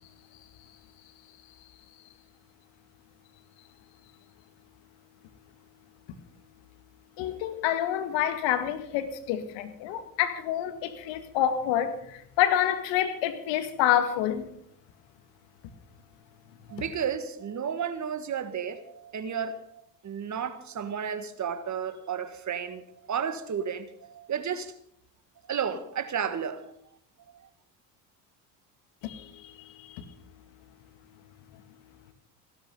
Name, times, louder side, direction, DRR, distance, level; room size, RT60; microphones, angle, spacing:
voice 1, 7.2-14.5 29.0-29.5 29.8-30.0, left 11 dB, 65° left, 2.0 m, -28 dB
voice 2, 16.7-22.8 23.1-24.7 25.5-26.7, right 7 dB, 35° right, 1.7 m, -32 dB
16.0 x 13.0 x 5.4 m
hypercardioid pair, 70°, 47 cm